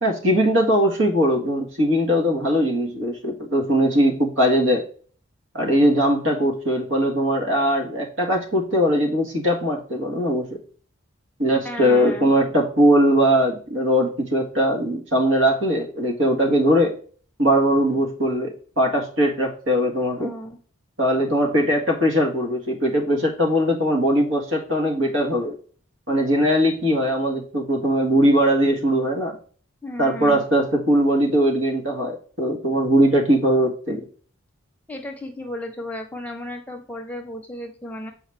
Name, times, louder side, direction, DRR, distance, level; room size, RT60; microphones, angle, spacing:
voice 1, 0.0-4.9 5.5-10.5 11.4-17.0 17.4-20.3 21.0-25.6 26.1-29.4 30.0-34.1, equal, 65° right, 1 dB, 1.9 m, -20 dB
voice 2, 11.6-12.3 20.2-20.6 29.8-30.4 34.9-38.1, left 1 dB, 5° left, 2 dB, 0.9 m, -34 dB
7.1 x 5.1 x 3.5 m, 0.43 s
head